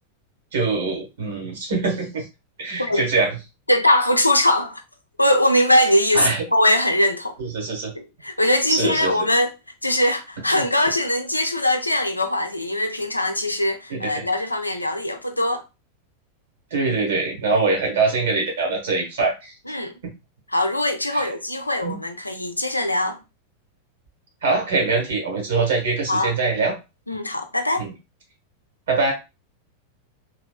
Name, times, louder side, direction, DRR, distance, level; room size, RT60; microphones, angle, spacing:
voice 1, 0.5-2.2 2.6-3.4 6.1-6.4 7.4-7.9 8.7-9.3 10.5-10.6 13.9-14.2 16.7-19.5 21.1-21.3 21.8-22.0 24.4-26.7 27.8-27.9 28.9-29.1, right 3 dB, 60° right, 1.5 m, -23 dB
voice 2, 3.7-4.8 5.2-7.4 7.9-9.5 9.8-15.6 19.7-19.9 20.5-23.2 26.1-26.3 27.1-27.9, left 1 dB, 85° left, 0.5 m, -21 dB
3.3 x 3.0 x 2.2 m
figure-of-eight pair, 90°, 0 cm